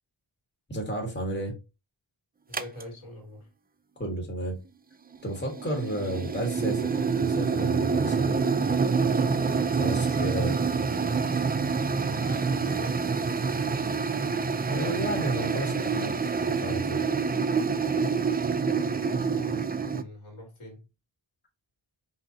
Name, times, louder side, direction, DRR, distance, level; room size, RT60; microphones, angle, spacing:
voice 1, 0.7-1.5 4.0-4.6 5.2-8.3 9.7-10.5 14.7-17.0, right 1 dB, 20° left, 1.6 m, -32 dB
voice 2, 2.5-3.5 10.2-10.4 12.0-13.6 18.7-20.8, left 1 dB, 85° left, 2.5 m, -44 dB
sound 1, 2.5-2.8 5.1-20.0, right 5 dB, 20° right, 0.3 m, -27 dB
5.6 x 2.7 x 2.7 m
wide cardioid pair, 60°, 48 cm